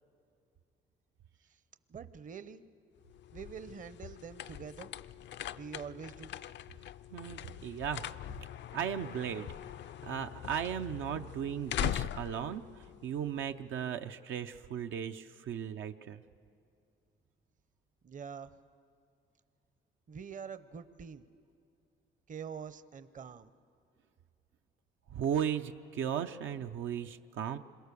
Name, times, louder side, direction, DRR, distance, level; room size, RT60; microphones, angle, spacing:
voice 1, 1.9-2.6 3.3-4.9 5.5-6.4 18.0-18.5 20.1-21.3 22.3-23.5, right 7 dB, 40° right, 13 dB, 0.8 m, -45 dB
sound 1, 3.0-13.7, left 11 dB, 65° left, 0.5 m, -42 dB
voice 2, 7.1-8.0 8.7-9.5 10.0-12.6 13.0-16.2 25.1-27.6, right 8 dB, 80° right, 6 dB, 0.8 m, -36 dB
27.0 x 22.5 x 6.9 m, 2.4 s
cardioid pair, 90°, 20 cm